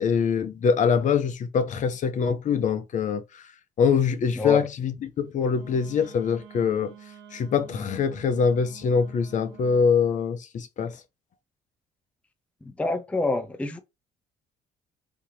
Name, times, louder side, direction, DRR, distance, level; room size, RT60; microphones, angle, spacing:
voice 1, 0.0-3.4 3.8-6.9 7.3-11.0, left 6 dB, 50° left, 0.7 m, -24 dB
Wind instrument woodwind instrument, 5.5-9.9, right 9 dB, 90° right, 1.0 m, -48 dB
voice 2, 12.7-13.8, left 3 dB, 5° left, 0.5 m, -26 dB
3.5 x 2.8 x 3.1 m
cardioid pair, 110°, 17 cm